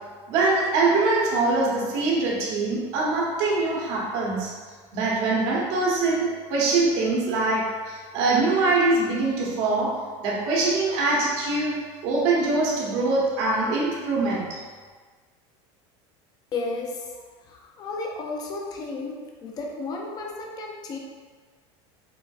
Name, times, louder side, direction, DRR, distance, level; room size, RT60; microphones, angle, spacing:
voice 1, 0.3-4.5 4.9-9.9 10.2-11.8 12.0-14.4, right 3 dB, 65° right, -4 dB, 1.0 m, -23 dB
voice 2, 16.5-21.0, left 3 dB, 25° left, 0 dB, 0.4 m, -33 dB
4.5 x 2.5 x 2.4 m, 1.5 s
supercardioid pair, 135°, 15 cm